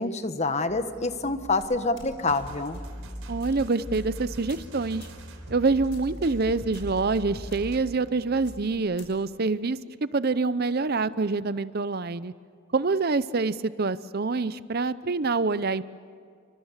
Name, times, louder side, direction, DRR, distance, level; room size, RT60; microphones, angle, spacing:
voice 1, 0.0-2.8, left 3 dB, 30° left, 9 dB, 1.3 m, -27 dB
sound 1, 0.7-8.7, right 1 dB, 10° right, 3.3 m, -48 dB
sound 2, 1.6-2.4 2.7-2.9 3.4-3.6 3.9-4.2 4.5-4.7 5.0-5.2 5.9-6.2 6.7-7.2 7.5-7.6 8.4-9.1, left 3 dB, 60° left, 6.0 m, -50 dB
sound 3, 2.2-7.8, right 1 dB, 75° right, 3.9 m, -40 dB
voice 2, 3.3-5.1 5.5-12.3 12.7-15.8, right 3 dB, 45° right, 15 dB, 0.6 m, -26 dB
29.5 x 24.5 x 7.3 m, 2.1 s
head